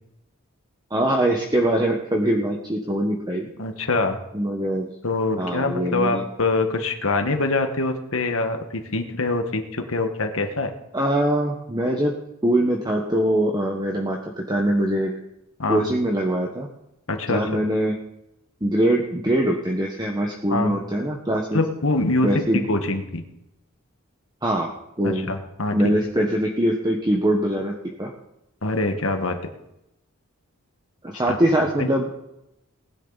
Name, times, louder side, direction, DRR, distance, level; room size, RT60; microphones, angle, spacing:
voice 1, 0.9-3.5 4.3-4.9 5.4-6.3 10.9-12.1 12.4-15.1 15.7-16.7 17.3-17.9 18.6-21.6 22.2-22.6 24.4-24.7 25.0-25.3 25.7-27.7 28.0-28.1 31.0-32.2, right 1 dB, 20° right, 0 dB, 1.3 m, -22 dB
voice 2, 3.6-4.2 5.0-10.7 15.6-15.9 17.1-17.6 20.5-20.7 21.5-23.2 25.0-25.9 28.6-29.5 31.3-31.4 31.8-31.9, left 2 dB, 65° left, 6 dB, 1.6 m, -24 dB
19.0 x 10.5 x 4.1 m, 0.86 s
head